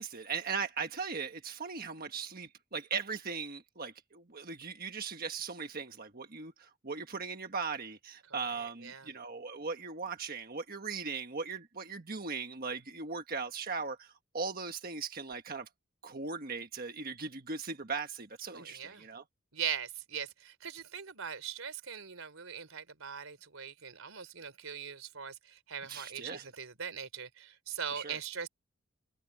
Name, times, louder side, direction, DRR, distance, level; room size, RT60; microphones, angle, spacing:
voice 1, 0.0-15.7 16.0-19.2 25.9-26.5 27.9-28.2, right 5 dB, 45° right, 1.4 m, -39 dB
voice 2, 8.3-9.1 18.5-19.1 19.5-28.5, right 7 dB, 85° right, 3.4 m, -41 dB
head